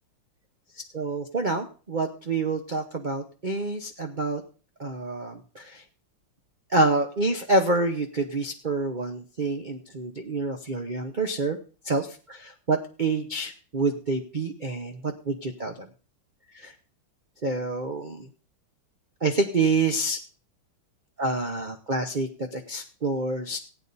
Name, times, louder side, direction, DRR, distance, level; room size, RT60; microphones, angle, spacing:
voice 1, 0.8-4.4 4.8-5.8 6.7-11.6 11.8-15.9 16.5-16.7 17.4-18.3 19.2-20.2 21.2-23.6, right 3 dB, 70° right, 5 dB, 0.4 m, -27 dB
15.5 x 9.1 x 4.1 m, 0.38 s
omnidirectional pair, 2.3 m